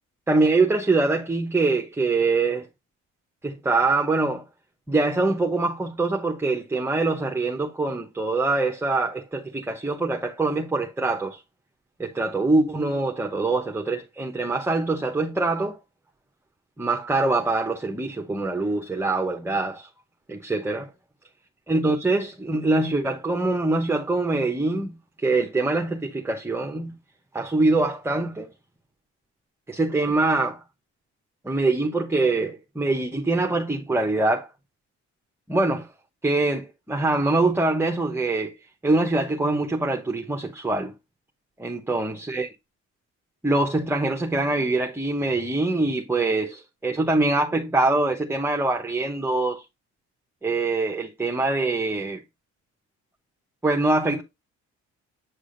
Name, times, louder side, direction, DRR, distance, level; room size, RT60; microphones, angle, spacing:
voice 1, 0.3-2.7 3.4-4.5 4.9-11.4 12.0-15.8 16.8-19.9 20.3-20.9 21.7-26.9 27.3-28.5 29.7-30.6 31.4-34.5 35.5-35.9 36.2-38.6 38.8-40.9 41.6-42.5 43.4-49.6 50.4-52.2 53.6-54.2, right 2 dB, 10° right, 0.9 m, -24 dB
8.6 x 4.8 x 2.6 m
cardioid pair, 90°, 30 cm